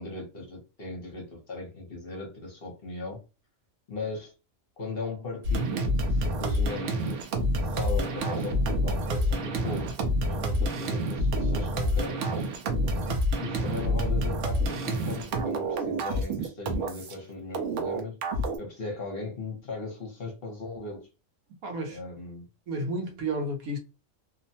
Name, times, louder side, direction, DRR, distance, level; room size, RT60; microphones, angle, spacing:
voice 1, 0.0-3.2 3.9-4.3 4.8-7.2 7.7-9.9 10.2-12.5 12.9-18.2 18.6-21.1 21.9-22.5, left 3 dB, 50° left, 0.9 m, -38 dB
sound 1, 5.4-17.1 17.5-18.6, equal, 65° right, 0.9 m, -28 dB
voice 2, 21.6-22.0 22.7-23.8, right 1 dB, 85° right, 1.2 m, -31 dB
2.9 x 2.1 x 2.7 m
omnidirectional pair, 1.5 m